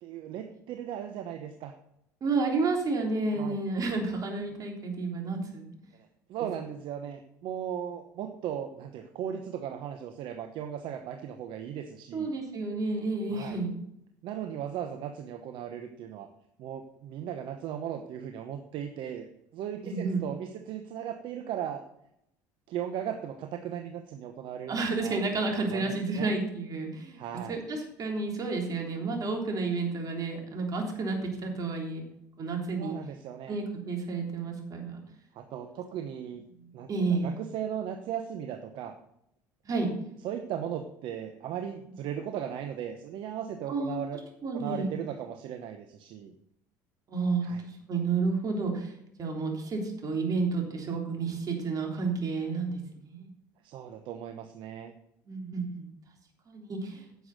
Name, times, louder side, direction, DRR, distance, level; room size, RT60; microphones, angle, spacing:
voice 1, 0.0-1.7 3.3-3.6 6.3-12.3 13.3-13.6 14.2-16.3 16.6-19.2 19.5-21.8 22.7-26.4 27.2-27.6 32.8-33.6 35.3-36.4 36.7-38.9 40.2-44.2 44.5-46.3 47.4-47.6 53.6-54.9, right 9 dB, 65° right, 7 dB, 1.0 m, -37 dB
voice 2, 2.2-5.7 12.1-13.7 19.8-20.3 24.7-27.2 27.5-32.0 32.4-32.9 33.5-35.0 36.9-37.4 39.6-39.9 43.7-44.0 44.4-44.9 47.1-48.9 49.2-53.3 55.3-55.9 56.5-57.0, right 3 dB, 40° right, 1 dB, 3.5 m, -31 dB
10.0 x 7.0 x 6.6 m, 0.78 s
supercardioid pair, 85°, 9 cm